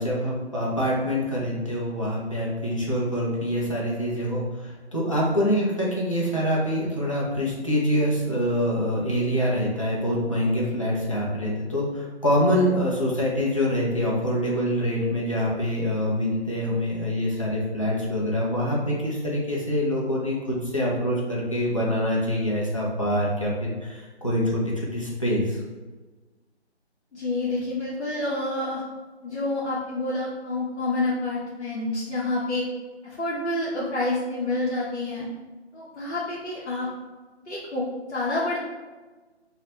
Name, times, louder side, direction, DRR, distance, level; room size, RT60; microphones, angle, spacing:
voice 1, 0.0-25.6, equal, 30° left, -5 dB, 0.4 m, -25 dB
voice 2, 27.1-28.8 29.2-32.6 33.0-35.3 35.7-36.9 37.5-38.6, left 2 dB, 85° left, -7 dB, 0.7 m, -28 dB
2.3 x 2.0 x 2.9 m, 1.3 s
figure-of-eight pair, 150°, 34 cm